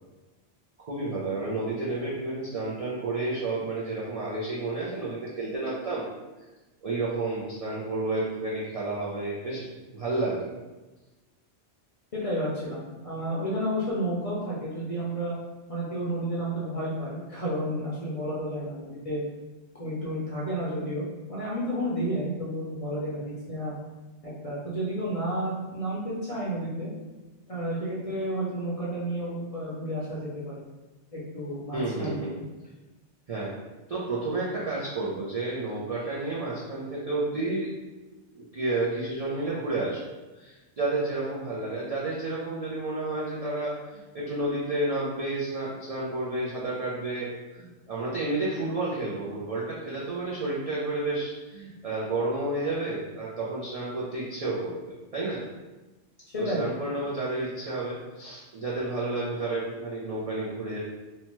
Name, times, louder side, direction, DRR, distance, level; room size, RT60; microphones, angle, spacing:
voice 1, 0.8-6.1 6.8-9.7 9.9-10.5 31.7-32.3 33.3-33.5 33.9-37.7 38.3-40.0 40.3-55.5 56.4-60.8, right 2 dB, 60° right, -6 dB, 0.3 m, -31 dB
voice 2, 12.1-15.3 15.7-19.2 19.8-23.8 24.2-26.9 27.5-30.5 31.1-32.4 56.3-56.7, equal, 45° left, -7 dB, 0.5 m, -31 dB
2.8 x 2.2 x 3.0 m, 1.1 s
omnidirectional pair, 1.2 m